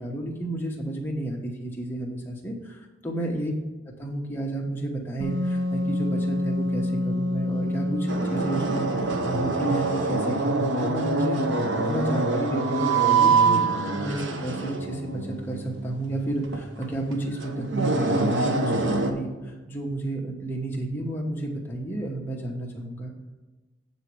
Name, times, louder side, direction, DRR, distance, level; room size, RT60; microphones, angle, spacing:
voice 1, 0.0-3.5 4.0-23.1, right 1 dB, 10° left, -2 dB, 1.1 m, -31 dB
Wind instrument woodwind instrument, 5.2-9.6, left 1 dB, 80° right, 2.5 m, -28 dB
sound 1, 8.1-19.1, right 3 dB, 60° right, 0.8 m, -25 dB
8.1 x 4.1 x 6.1 m, 1.2 s
head